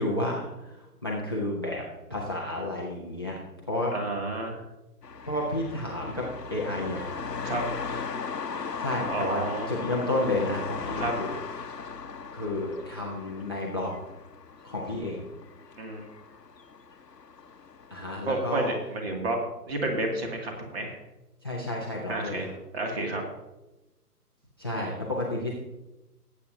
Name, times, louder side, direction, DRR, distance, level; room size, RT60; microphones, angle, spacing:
voice 1, 0.0-1.8 2.1-3.3 3.7-3.9 5.3-6.3 6.5-7.1 7.9-8.1 8.6-9.4 9.7-11.7 12.3-13.9 14.6-15.3 17.9-18.7 21.4-22.4 24.6-25.5, left 1 dB, 15° left, -2 dB, 0.6 m, -31 dB
voice 2, 3.9-4.6 7.4-7.7 9.1-9.7 11.0-11.1 15.8-16.0 18.2-19.4 19.7-21.0 22.1-23.2, right 2 dB, 40° right, 2 dB, 2.4 m, -30 dB
sound 1, 5.0-18.2, left 5 dB, 85° left, 1.0 m, -38 dB
18.0 x 8.4 x 2.7 m, 1.0 s
figure-of-eight pair, 140°, 48 cm